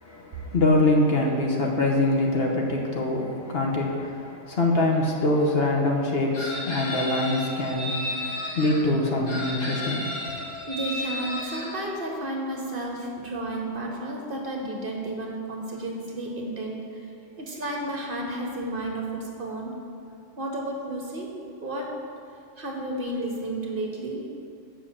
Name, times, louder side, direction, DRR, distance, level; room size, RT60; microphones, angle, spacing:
voice 1, 0.0-10.5, left 2 dB, 55° left, 0 dB, 1.1 m, -24 dB
Chicken rooster, 6.3-8.8 9.3-11.7, left 1 dB, 80° left, 1.9 m, -33 dB
voice 2, 10.7-17.0 17.4-19.7 20.4-21.3 21.6-21.9 22.6-24.2, right 1 dB, 45° right, 0 dB, 1.2 m, -32 dB
7.6 x 5.2 x 7.1 m, 2.6 s
omnidirectional pair, 1.3 m